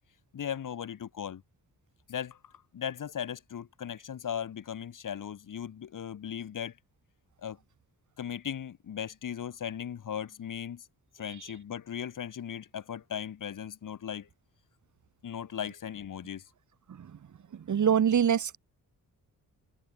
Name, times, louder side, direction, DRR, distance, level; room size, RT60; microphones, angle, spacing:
voice 1, 0.3-1.4 2.1-6.7 7.4-7.6 8.2-10.8 11.1-14.3 15.2-16.4, left 9 dB, 60° left, 4.0 m, -37 dB
voice 2, 17.5-18.6, right 8 dB, 55° right, 3.4 m, -25 dB
wide cardioid pair, 180°, 35 cm